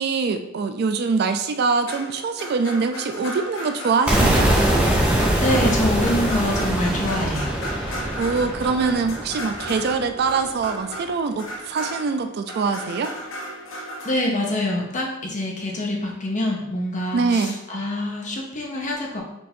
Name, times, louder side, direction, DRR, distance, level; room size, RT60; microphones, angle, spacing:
voice 1, 0.0-4.5 8.2-13.1 17.1-17.6, right 4 dB, 50° right, 7 dB, 0.3 m, -23 dB
sound 1, 1.8-14.1, equal, 70° left, 0.7 m, -35 dB
sound 2, 4.1-9.9, right 1 dB, 5° right, 0.7 m, -22 dB
voice 2, 5.1-7.5 14.0-19.2, left 1 dB, 40° left, -1 dB, 0.9 m, -25 dB
4.6 x 2.6 x 4.2 m, 0.87 s
head